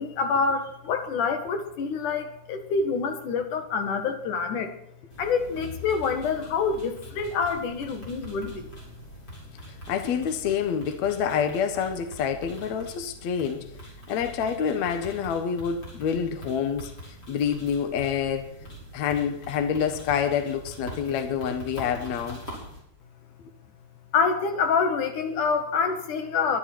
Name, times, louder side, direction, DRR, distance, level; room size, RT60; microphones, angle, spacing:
voice 1, 0.0-4.7 5.2-8.7 24.1-26.6, left 5 dB, 80° left, 3.2 m, -26 dB
sound 1, 5.1-22.8, equal, 30° left, 6.2 m, -43 dB
voice 2, 9.9-13.7 14.1-16.9 17.3-18.5 18.9-22.4, left 7 dB, 65° left, 2.4 m, -27 dB
23.0 x 12.0 x 4.6 m
omnidirectional pair, 3.5 m